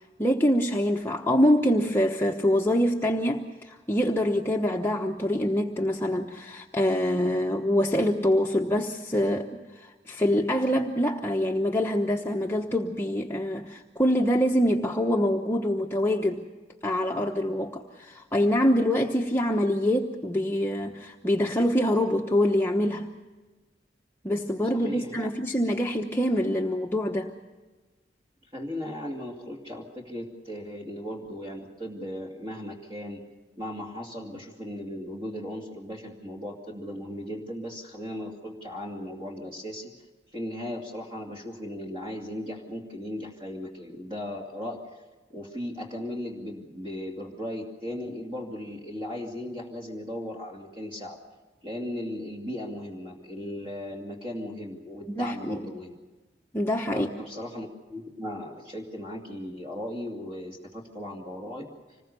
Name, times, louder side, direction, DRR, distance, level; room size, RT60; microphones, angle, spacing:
voice 1, 0.2-9.5 9.8-16.5 16.8-23.1 24.2-27.3 55.1-55.6 56.5-57.1, equal, 15° left, 0 dB, 1.0 m, -25 dB
voice 2, 24.7-25.3 28.5-33.2 33.6-39.9 40.3-44.8 45.3-51.2 51.6-55.9 56.9-61.7, left 1 dB, 30° right, 0 dB, 2.6 m, -37 dB
26.0 x 20.0 x 6.8 m, 1.2 s
head